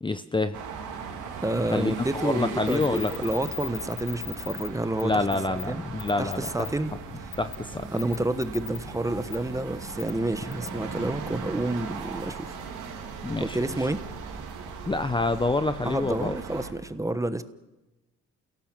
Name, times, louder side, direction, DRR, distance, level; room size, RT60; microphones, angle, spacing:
voice 1, 0.0-0.6 1.7-3.1 5.0-6.7 7.4-8.0 13.2-13.9 14.9-16.4, left 2 dB, 15° left, 10 dB, 0.9 m, -27 dB
sound 1, 0.5-16.7, right 5 dB, 90° right, 3.5 m, -39 dB
voice 2, 1.4-5.2 5.5-5.8 6.2-6.9 7.9-12.6 13.4-14.0 15.8-17.4, right 1 dB, 10° right, 12 dB, 1.2 m, -29 dB
sound 2, 2.7-4.7 5.0-5.1 5.3-5.6 6.0-6.7 7.3-7.6 8.0-8.8 9.3-9.4 10.0-10.1 10.5-10.7, left 11 dB, 65° left, 1.0 m, -37 dB
29.0 x 17.0 x 7.4 m, 1.1 s
cardioid pair, 90°, 30 cm